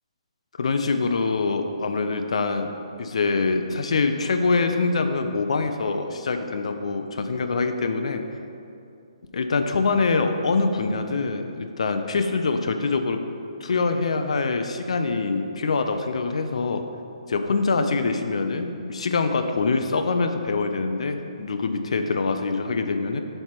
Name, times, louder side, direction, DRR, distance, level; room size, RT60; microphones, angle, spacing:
voice 1, 0.6-8.2 9.3-13.2 13.6-16.8 17.3-23.2, left 4 dB, 65° left, 6 dB, 0.5 m, -24 dB
7.2 x 3.3 x 5.8 m, 2.6 s
hypercardioid pair, 150°, 4 cm